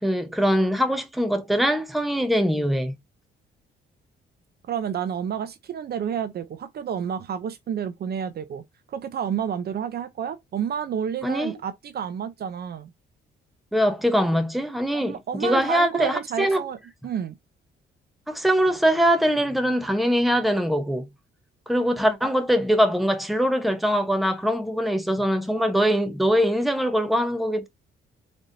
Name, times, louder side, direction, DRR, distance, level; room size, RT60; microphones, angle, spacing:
voice 1, 0.0-3.0 11.2-11.6 13.7-16.6 18.3-21.1 21.7-27.7, equal, ahead, 0.9 m, -22 dB
voice 2, 4.7-8.6 8.9-12.9 14.9-16.8 17.0-17.4, right 8 dB, 55° right, 0.6 m, -30 dB
4.1 x 3.4 x 2.6 m
cardioid pair, 90°, 20 cm